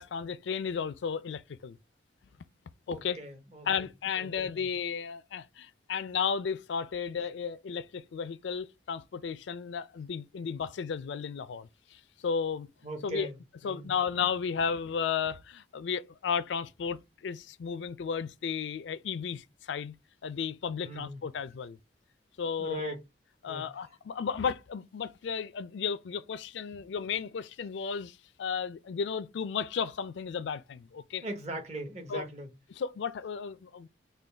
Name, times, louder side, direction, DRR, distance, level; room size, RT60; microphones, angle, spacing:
voice 1, 0.0-1.8 2.9-3.2 3.6-12.7 13.0-13.3 13.6-19.9 20.2-21.8 22.4-22.9 23.4-31.2 32.1-32.2 32.7-33.9, left 6 dB, 75° left, 0.4 m, -34 dB
voice 2, 2.9-3.7 4.2-4.7 12.8-13.9 20.9-21.2 22.6-23.0 23.5-23.7 31.2-32.5, right 1 dB, 35° right, 0.9 m, -40 dB
3.8 x 2.3 x 3.3 m
head